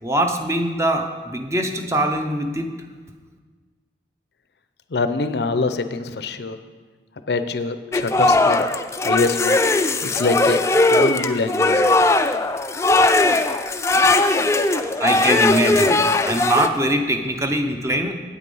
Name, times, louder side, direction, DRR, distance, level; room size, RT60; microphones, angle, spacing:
voice 1, 0.0-2.7 15.0-18.1, right 1 dB, 15° right, 5 dB, 0.6 m, -22 dB
voice 2, 4.9-6.6 7.3-8.6 9.0-9.6 10.0-10.6 10.9-11.8, left 3 dB, 70° left, 10 dB, 0.6 m, -24 dB
sound 1, 7.9-16.7, left 2 dB, 15° left, 0.3 m, -18 dB
8.5 x 8.4 x 5.4 m, 1.4 s
head